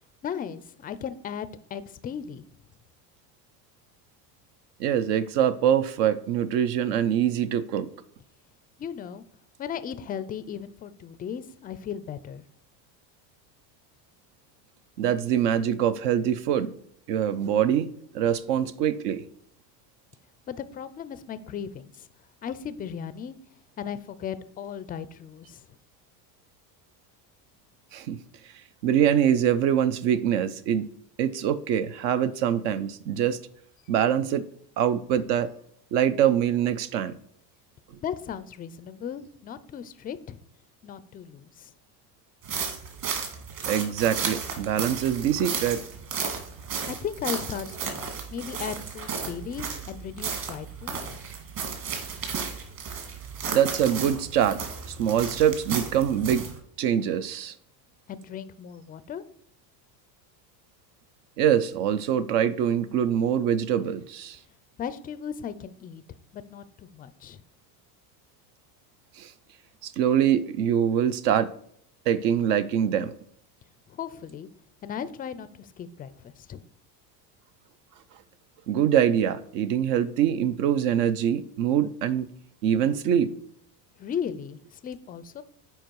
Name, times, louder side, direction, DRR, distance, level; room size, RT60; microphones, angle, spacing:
voice 1, 0.2-2.4 8.8-9.2 9.6-12.4 20.5-22.1 22.4-23.4 23.8-25.7 38.0-40.4 40.8-41.7 46.9-51.2 58.1-59.2 64.8-66.0 66.3-67.4 73.9-74.5 74.8-76.6 84.0-85.4, left 8 dB, 20° left, 0.3 m, -36 dB
voice 2, 4.8-7.9 15.0-16.7 17.1-19.2 27.9-28.2 28.8-30.9 31.2-33.4 33.9-34.4 34.8-35.5 35.9-37.1 43.7-45.8 53.5-54.6 54.9-56.5 56.8-57.5 61.4-64.4 69.2-69.3 69.8-71.5 72.1-73.1 78.7-82.3 82.6-83.3, right 9 dB, 70° right, 0.8 m, -24 dB
sound 1, 42.4-56.6, right 6 dB, 45° right, 2.1 m, -34 dB
7.7 x 4.8 x 4.6 m
supercardioid pair, 105°, 49 cm